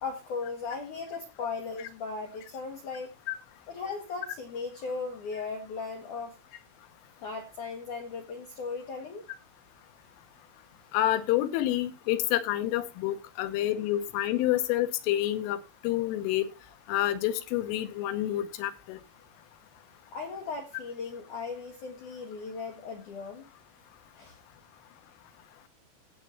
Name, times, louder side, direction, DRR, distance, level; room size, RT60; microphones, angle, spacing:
voice 1, 0.0-3.1 3.7-6.4 7.2-9.3 20.1-23.5 24.2-24.3, left 4 dB, 65° left, 2 dB, 2.0 m, -37 dB
voice 2, 10.9-15.6 15.8-16.4 16.9-19.0, left 13 dB, 85° left, 10 dB, 3.3 m, -28 dB
16.5 x 8.1 x 3.0 m, 0.26 s
omnidirectional pair, 5.7 m